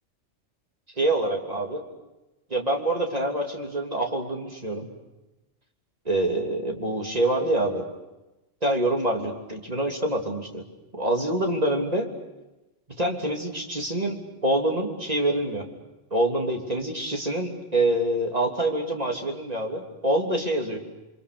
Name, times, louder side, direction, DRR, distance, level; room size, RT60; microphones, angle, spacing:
voice 1, 1.0-1.8 2.5-4.9 6.0-7.8 8.6-10.6 10.9-12.1 13.0-15.6 16.1-20.8, right 1 dB, 30° right, 2 dB, 3.3 m, -26 dB
29.5 x 24.5 x 6.9 m, 1.0 s
omnidirectional pair, 1.3 m